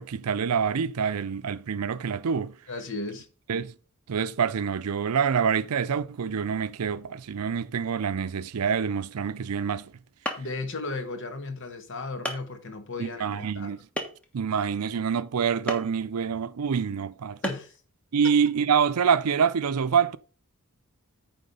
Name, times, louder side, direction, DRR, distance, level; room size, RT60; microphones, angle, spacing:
voice 1, 0.0-2.5 3.5-3.7 4.1-9.9 13.0-13.8 14.3-17.4 18.1-20.2, right 6 dB, 85° right, 0.5 m, -26 dB
voice 2, 2.7-3.3 10.4-13.7 17.4-17.7 18.2-18.3, left 3 dB, 55° left, 1.2 m, -35 dB
sound 1, 9.8-9.9 10.3-10.6 11.5-11.6 12.2-12.5 14.0-14.4 15.7-15.9 17.4-17.8, equal, 5° left, 1.2 m, -32 dB
9.3 x 3.8 x 5.4 m
head